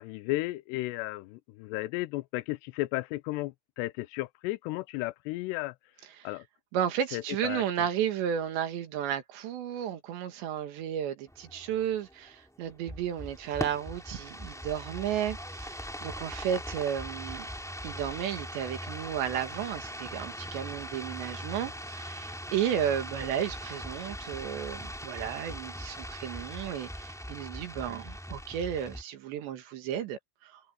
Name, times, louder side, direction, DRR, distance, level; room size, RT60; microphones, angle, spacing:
voice 1, 0.0-5.8 6.2-6.5 7.1-7.6 21.6-21.7, left 19 dB, 85° left, 2.7 m, -34 dB
voice 2, 6.7-17.5 17.8-30.6, right 9 dB, 85° right, 4.2 m, -33 dB
sound 1, 11.3-29.0, equal, ahead, 2.5 m, -40 dB
omnidirectional pair, 4.9 m